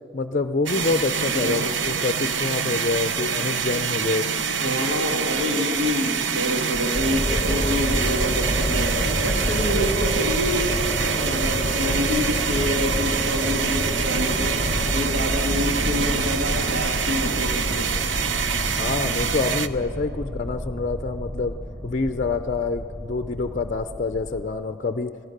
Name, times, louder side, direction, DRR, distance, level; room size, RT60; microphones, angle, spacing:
voice 1, 0.1-4.3 4.6-4.9 18.8-21.5 21.8-25.1, left 3 dB, 40° left, 8 dB, 0.5 m, -26 dB
sound 1, 0.7-19.7, right 6 dB, 65° right, 0.7 m, -26 dB
voice 2, 4.6-8.9 9.2-10.7 11.0-14.5 14.9-17.9, left 1 dB, 80° right, 0 dB, 2.1 m, -27 dB
sound 2, 6.9-24.4, equal, 10° right, 4.9 m, -29 dB
26.5 x 16.5 x 6.6 m, 2.5 s
head